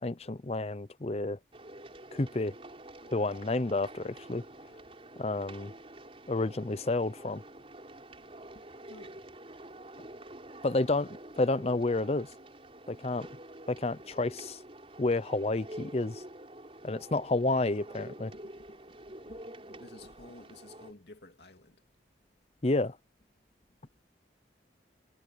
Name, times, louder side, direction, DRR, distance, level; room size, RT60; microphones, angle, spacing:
voice 1, 0.0-1.4 2.1-2.5 3.1-4.4 5.2-5.7 6.3-7.4 10.6-12.3 12.9-13.3 13.7-14.6 15.0-16.2 16.8-18.3 22.6-23.0, left 2 dB, 35° left, 0.7 m, -30 dB
sound 1, 1.5-20.9, right 1 dB, 35° right, 5.1 m, -48 dB
voice 2, 8.9-9.2 18.3-18.8 19.1-19.4 19.7-21.8, left 2 dB, 70° left, 2.6 m, -53 dB
head